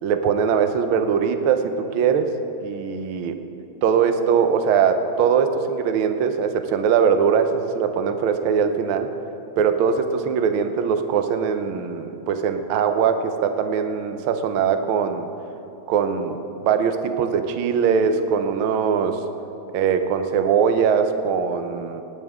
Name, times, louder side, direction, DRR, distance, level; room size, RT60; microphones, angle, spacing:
voice 1, 0.0-2.3 2.6-3.4 3.8-9.1 9.6-15.3 15.9-19.2 19.7-22.0, right 7 dB, 85° right, 7 dB, 1.1 m, -21 dB
27.5 x 10.0 x 3.6 m, 2.9 s
omnidirectional pair, 3.5 m